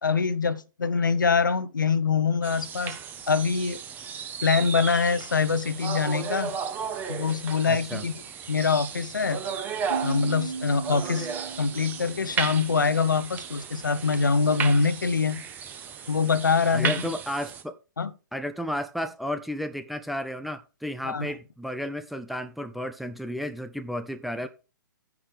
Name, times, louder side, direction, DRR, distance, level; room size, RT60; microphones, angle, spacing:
voice 1, 0.0-3.0 3.3-3.8 4.4-6.5 7.1-8.1 8.5-9.4 10.0-11.3 11.6-15.4 16.1-16.9 18.0-18.1 21.0-21.3, left 5 dB, 70° left, 0.8 m, -24 dB
sound 1, 2.4-17.6, right 7 dB, 15° right, 1.0 m, -35 dB
voice 2, 7.7-8.0 16.7-17.8 18.3-24.5, equal, ahead, 0.4 m, -33 dB
Piano, 9.9-13.3, right 4 dB, 75° right, 4.6 m, -37 dB
9.6 x 8.4 x 3.3 m
figure-of-eight pair, 125°, 11 cm